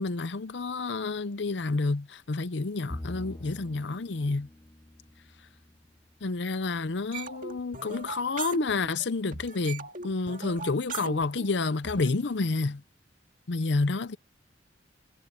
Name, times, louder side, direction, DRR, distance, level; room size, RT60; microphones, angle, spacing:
voice 1, 0.0-4.5 6.2-12.8 13.5-14.2, left 3 dB, 70° left, 0.7 m, -29 dB
Bowed string instrument, 2.9-6.4, left 1 dB, 15° left, 0.6 m, -44 dB
sound 1, 7.1-9.1 9.3-12.1, right 4 dB, 45° right, 2.1 m, -39 dB
head